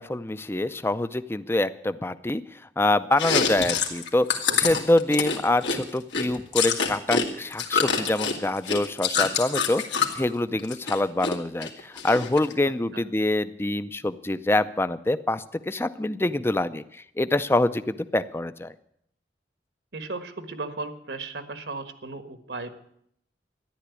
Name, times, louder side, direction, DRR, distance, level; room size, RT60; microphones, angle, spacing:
voice 1, 0.0-2.4 2.8-9.8 10.1-16.8 17.2-18.7, left 2 dB, 15° left, 13 dB, 0.5 m, -25 dB
Chewing mastication, 3.1-7.3 7.5-10.2 10.6-11.3 11.6-12.5, left 5 dB, 90° left, 2.2 m, -26 dB
voice 2, 4.5-4.8 12.9-13.0 19.9-22.7, right 3 dB, 75° right, 9 dB, 1.5 m, -36 dB
13.5 x 11.0 x 8.3 m, 0.71 s
head